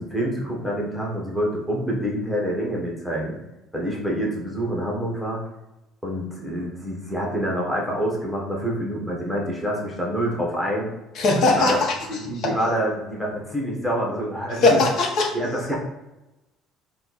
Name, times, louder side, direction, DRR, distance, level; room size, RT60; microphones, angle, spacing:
voice 1, 0.0-3.4 3.7-5.4 6.0-10.9 11.5-14.8 15.3-15.7, equal, 5° left, -2 dB, 1.1 m, -27 dB
voice 2, 11.1-11.9 12.3-12.6 14.5-15.3, left 2 dB, 55° left, 0 dB, 1.1 m, -20 dB
4.2 x 2.3 x 4.1 m, 0.99 s
cardioid pair, 135°, 0 cm